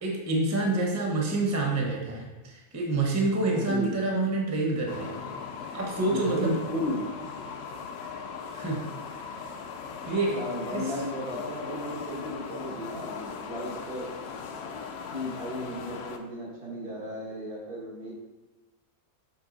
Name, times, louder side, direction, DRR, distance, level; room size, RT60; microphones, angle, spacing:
voice 1, 0.0-5.2 5.7-6.5 8.5-8.8 10.1-10.4 10.7-10.9, right 2 dB, 15° right, 0 dB, 0.7 m, -27 dB
voice 2, 3.4-3.9 6.1-7.1 10.0-14.1 15.1-18.1, equal, 85° right, -6 dB, 2.4 m, -34 dB
sound 1, 4.9-16.2, left 5 dB, 70° left, 0.6 m, -39 dB
6.8 x 3.4 x 4.0 m, 1.2 s
omnidirectional pair, 1.6 m